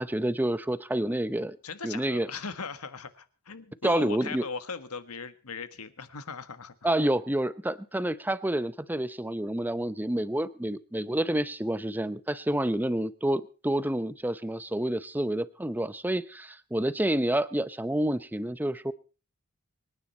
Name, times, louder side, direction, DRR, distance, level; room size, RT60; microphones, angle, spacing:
voice 1, 0.0-1.6 1.8-2.3 3.8-4.4 6.8-18.9, right 1 dB, 10° right, 14 dB, 0.6 m, -28 dB
voice 2, 1.6-6.9, left 5 dB, 90° left, 11 dB, 1.5 m, -39 dB
25.5 x 9.8 x 4.3 m, 0.36 s
head